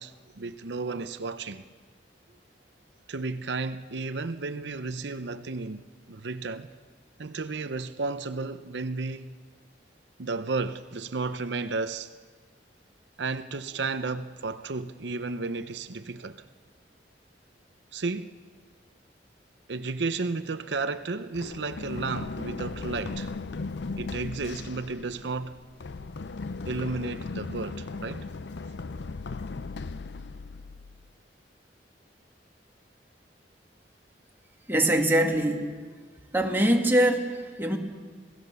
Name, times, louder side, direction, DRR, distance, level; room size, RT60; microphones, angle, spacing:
voice 1, 0.0-1.6 3.1-6.7 7.2-9.3 10.2-12.1 13.2-16.4 17.9-18.3 19.7-23.3 24.0-25.5 26.6-28.3, right 3 dB, 80° right, 0.7 m, -33 dB
Run, 21.3-31.1, left 3 dB, 70° left, 0.5 m, -37 dB
voice 2, 34.7-35.7 36.3-37.8, right 1 dB, 15° right, 2.0 m, -23 dB
27.0 x 17.0 x 6.9 m
head